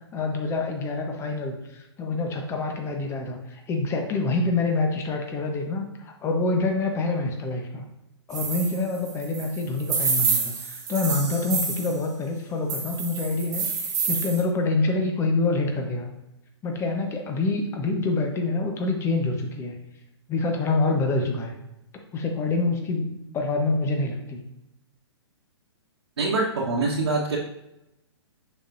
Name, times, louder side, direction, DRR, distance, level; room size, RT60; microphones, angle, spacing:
voice 1, 0.1-7.8 8.3-16.1 16.6-19.7 20.3-21.5 22.1-24.4, left 3 dB, 20° left, 3 dB, 1.0 m, -26 dB
sound 1, 8.3-12.0 12.7-14.4, right 5 dB, 20° right, 1.2 m, -28 dB
voice 2, 26.2-27.4, right 3 dB, 65° right, -6 dB, 1.3 m, -24 dB
6.9 x 5.5 x 2.6 m, 0.89 s
figure-of-eight pair, 120°, 15 cm